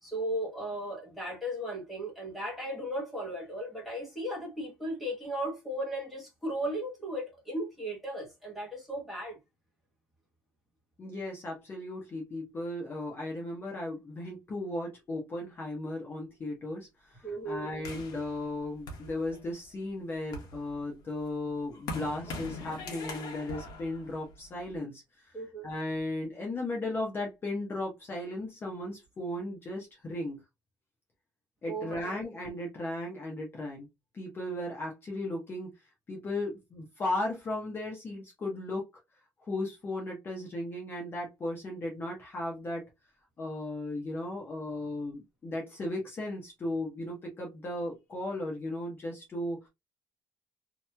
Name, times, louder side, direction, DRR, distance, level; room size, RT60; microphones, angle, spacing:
voice 1, 0.0-9.4 17.2-17.7 25.3-25.7 31.7-32.1, right 1 dB, ahead, 1.2 m, -36 dB
voice 2, 11.0-25.3 25.6-30.4 31.6-33.9 34.1-35.7 36.1-38.9 39.4-42.9 43.4-49.7, left 1 dB, 25° left, 0.9 m, -36 dB
sound 1, 17.8-19.7 20.1-24.8, left 2 dB, 50° left, 1.1 m, -42 dB
2.9 x 2.7 x 2.2 m
cardioid pair, 170°, 9 cm